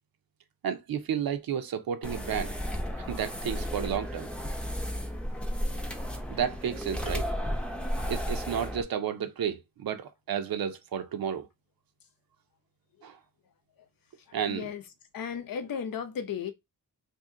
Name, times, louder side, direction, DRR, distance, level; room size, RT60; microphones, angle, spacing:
voice 1, 0.6-2.5 3.0-4.3 6.3-7.3 8.1-11.5 13.0-13.2 14.3-14.7, right 8 dB, 80° right, 0.7 m, -32 dB
sound 1, 2.0-8.8, equal, 5° left, 0.6 m, -33 dB
voice 2, 14.3-14.8 15.1-16.5, left 7 dB, 70° left, 0.7 m, -35 dB
2.7 x 2.6 x 3.7 m
wide cardioid pair, 155°, 35 cm